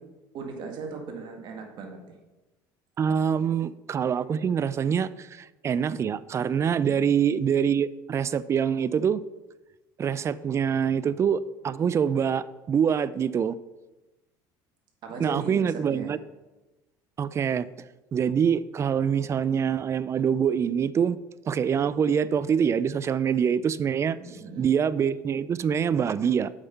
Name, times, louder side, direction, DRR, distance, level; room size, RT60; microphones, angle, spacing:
voice 1, 0.3-2.2 15.0-16.2 24.2-24.7, right 4 dB, 55° right, 2 dB, 1.9 m, -38 dB
voice 2, 3.0-9.2 10.0-13.6 15.2-16.2 17.2-17.7 18.1-21.2 21.5-24.2 24.6-26.5, right 7 dB, 30° right, 17 dB, 0.4 m, -25 dB
7.9 x 5.6 x 5.5 m, 1.1 s
supercardioid pair, 105°, 9 cm